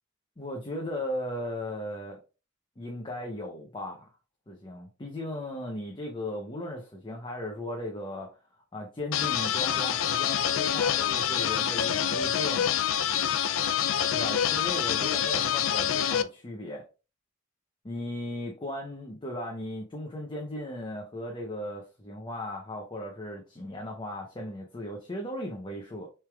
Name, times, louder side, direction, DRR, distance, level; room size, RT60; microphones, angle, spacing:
voice 1, 0.4-2.2 2.8-4.1 4.5-8.4 8.7-12.7 14.1-16.9 17.8-26.1, left 1 dB, 25° left, 0.7 m, -37 dB
sound 1, 9.1-16.2, left 9 dB, 75° left, 0.4 m, -26 dB
6.3 x 3.4 x 2.3 m
head